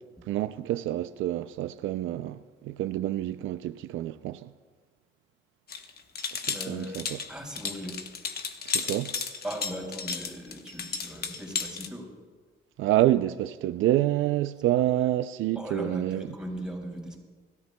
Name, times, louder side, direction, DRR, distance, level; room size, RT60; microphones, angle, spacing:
voice 1, 0.3-4.5 6.3-6.4 6.7-7.2 8.7-9.1 12.8-16.3, right 14 dB, 85° right, 0.4 m, -27 dB
sound 1, 5.7-11.9, left 5 dB, 50° left, 1.0 m, -34 dB
voice 2, 6.5-7.0 7.3-8.0 9.4-12.1 14.7-14.8 15.5-17.2, equal, 5° right, 4.3 m, -38 dB
25.5 x 13.5 x 2.2 m
cardioid pair, 90°, 20 cm